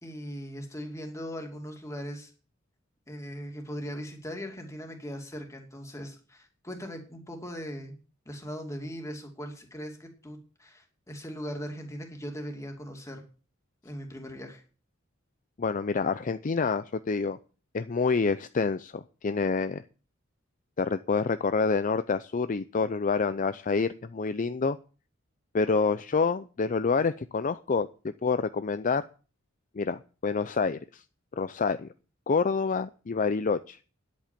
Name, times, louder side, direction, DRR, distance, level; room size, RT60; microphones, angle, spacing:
voice 1, 0.0-2.3 3.1-8.0 8.3-13.2 13.8-14.6, equal, 15° left, 3 dB, 2.7 m, -39 dB
voice 2, 15.6-17.4 17.7-19.8 20.8-24.8 25.5-27.9 28.2-29.0 29.7-31.0 31.4-31.9 32.3-33.8, left 4 dB, 40° left, 12 dB, 0.5 m, -27 dB
10.5 x 8.6 x 7.4 m, 0.37 s
head